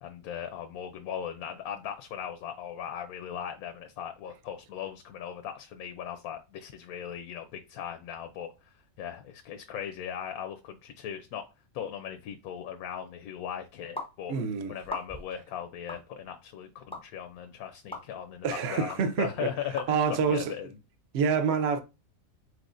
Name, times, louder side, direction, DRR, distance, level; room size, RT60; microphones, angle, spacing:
voice 1, 0.0-11.5 11.7-14.4 14.7-20.7, left 9 dB, 85° left, 1.1 m, -38 dB
sound 1, 14.0-14.1 14.8-15.3 15.9-16.0 16.9-17.0 17.9-18.0 18.9-19.0 19.8-19.9, left 2 dB, 10° left, 0.3 m, -37 dB
voice 2, 14.3-14.7 18.4-19.5 19.9-20.5 21.1-21.8, right 6 dB, 55° right, 0.8 m, -27 dB
4.7 x 4.0 x 2.5 m
omnidirectional pair, 1.5 m